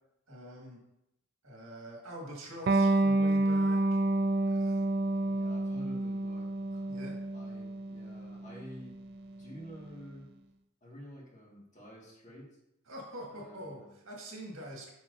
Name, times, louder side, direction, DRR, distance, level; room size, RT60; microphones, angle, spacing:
voice 1, 0.3-0.8 1.4-3.8 4.5-4.8 6.9-7.2 12.9-14.9, equal, 75° right, -1 dB, 1.9 m, -45 dB
Electric guitar, 2.7-9.8, right 2 dB, 50° right, 0.4 m, -29 dB
voice 2, 5.3-8.9 9.4-10.3 10.8-12.5 13.3-14.0, equal, 35° left, -3 dB, 1.9 m, -50 dB
9.1 x 5.7 x 2.7 m, 0.87 s
head